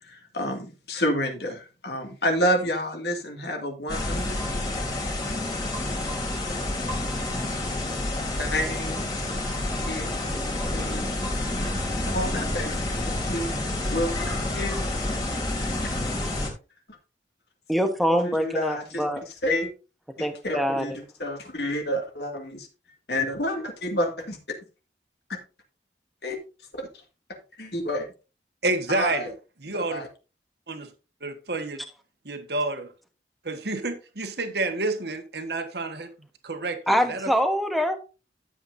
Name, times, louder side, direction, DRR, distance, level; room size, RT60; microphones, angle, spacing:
voice 1, 0.0-4.4 8.4-9.0 9.8-11.2 12.0-13.5 13.9-14.7 15.8-15.9 18.2-19.0 19.4-19.7 20.2-20.9 21.2-22.7 23.1-24.4 26.2-26.4 26.7-26.9 27.6-28.1 28.9-29.3 29.7-30.1, left 1 dB, 65° left, 2.3 m, -29 dB
sound 1, 3.9-16.5, left 1 dB, 20° left, 2.8 m, -29 dB
voice 2, 17.7-19.2 20.2-21.0 36.9-38.0, equal, ahead, 1.1 m, -24 dB
voice 3, 28.6-29.3 29.6-30.0 30.7-30.9 31.2-31.8 32.2-32.9 33.4-36.1 36.4-37.3, right 2 dB, 65° right, 1.5 m, -29 dB
12.5 x 8.0 x 2.7 m
head